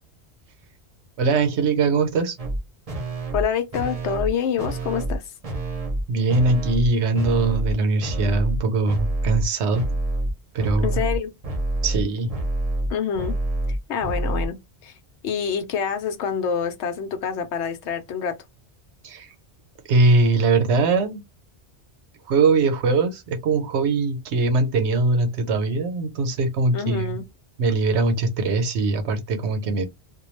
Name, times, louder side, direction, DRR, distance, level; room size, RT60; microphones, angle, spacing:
voice 1, 1.2-2.4 6.1-9.9 10.5-11.0 11.8-12.3 19.0-19.3 19.9-21.2 22.3-27.2 27.6-29.9, right 3 dB, 85° right, 1.0 m, -21 dB
sound 1, 2.4-2.6 2.9-3.4 3.7-4.3 4.6-5.2 5.4-6.0 6.3-6.9 7.2-7.7 8.0-8.6 8.9-9.5 9.7-10.3 10.6-14.5, right 1 dB, 40° right, 0.7 m, -27 dB
voice 2, 3.3-5.3 10.8-11.3 12.9-13.4 13.7-15.0 15.2-18.4 26.7-27.2, left 7 dB, 85° left, 0.9 m, -27 dB
2.3 x 2.2 x 3.0 m
omnidirectional pair, 1.1 m